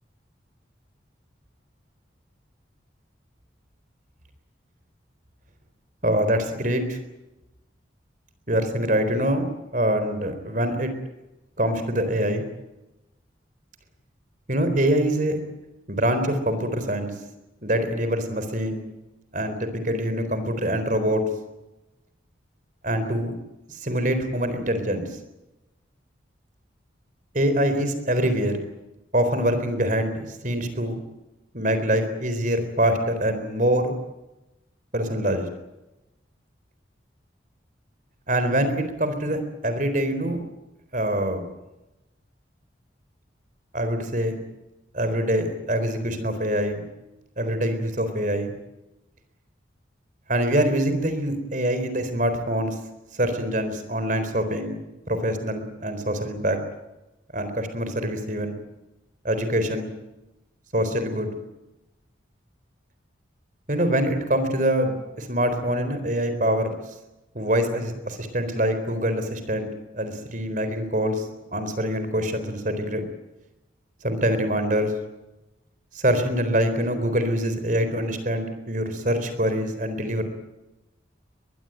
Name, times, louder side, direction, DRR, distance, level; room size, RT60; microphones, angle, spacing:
voice 1, 6.0-7.0 8.5-10.9 11.6-12.4 14.5-15.4 15.9-17.1 17.6-18.8 19.3-21.2 22.8-23.3 23.7-25.1 27.3-28.6 29.1-31.0 31.5-33.9 34.9-35.5 38.3-40.4 40.9-41.5 43.7-44.4 44.9-46.8 47.4-48.5 50.3-52.8 53.1-54.8 55.1-56.6 57.3-58.5 59.2-59.9 60.7-61.3 63.7-66.7 67.3-69.7 69.9-73.0 74.0-74.9 75.9-80.2, right 1 dB, 45° right, 9 dB, 4.1 m, -24 dB
22.5 x 22.0 x 9.2 m, 0.98 s
head